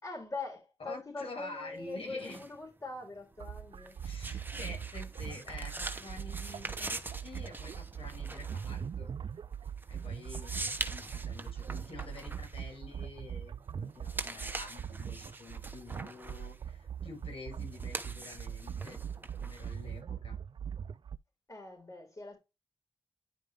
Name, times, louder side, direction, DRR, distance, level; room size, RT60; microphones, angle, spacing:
voice 1, 0.0-4.0 21.5-22.4, left 3 dB, 35° left, 4.8 m, -42 dB
voice 2, 0.8-2.4 4.0-9.1 9.9-20.4, left 3 dB, 75° left, 5.7 m, -48 dB
sound 1, 1.8-13.5 13.9-20.0, right 2 dB, 20° right, 0.9 m, -43 dB
sound 2, 3.4-21.2, right 8 dB, 55° right, 0.4 m, -41 dB
10.5 x 5.1 x 3.4 m
wide cardioid pair, 110°, 10 cm